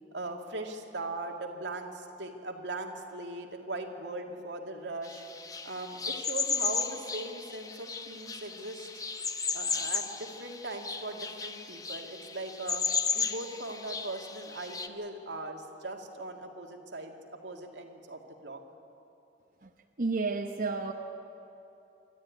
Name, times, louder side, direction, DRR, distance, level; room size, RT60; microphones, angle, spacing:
voice 1, 0.1-5.2 5.6-8.9 9.5-12.8 13.1-18.6, right 2 dB, 90° right, 2 dB, 2.2 m, -39 dB
sound 1, 5.0-14.9, left 5 dB, 20° left, 0.8 m, -35 dB
voice 2, 20.0-20.9, right 3 dB, 50° right, 4 dB, 0.9 m, -31 dB
26.5 x 13.0 x 9.5 m, 2.8 s
head